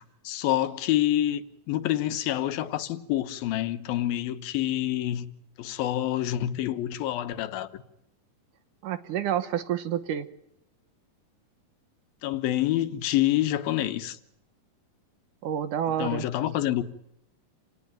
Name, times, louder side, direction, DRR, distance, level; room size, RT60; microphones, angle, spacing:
voice 1, 0.0-5.3 5.6-7.8 12.2-14.2 16.0-16.8, left 13 dB, 85° left, 2.9 m, -27 dB
voice 2, 8.8-10.3 15.4-16.3, right 10 dB, 70° right, 2.5 m, -29 dB
29.0 x 18.0 x 9.0 m
omnidirectional pair, 4.2 m